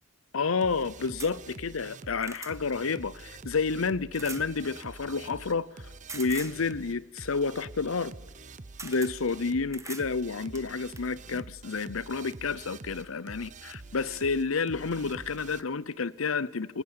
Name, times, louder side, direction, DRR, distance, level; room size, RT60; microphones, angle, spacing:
voice 1, 0.3-8.1 8.8-16.8, left 4 dB, 90° left, 0.8 m, -30 dB
sound 1, 0.6-15.6, right 3 dB, 40° right, 0.8 m, -46 dB
sound 2, 1.2-1.3 1.9-2.5 4.1-4.5 6.1-6.6 8.3-8.4 8.8-9.1 9.7-10.1 10.5-11.1 12.1-12.2 12.6-12.7, right 4 dB, 15° right, 1.5 m, -42 dB
21.0 x 20.0 x 8.9 m
head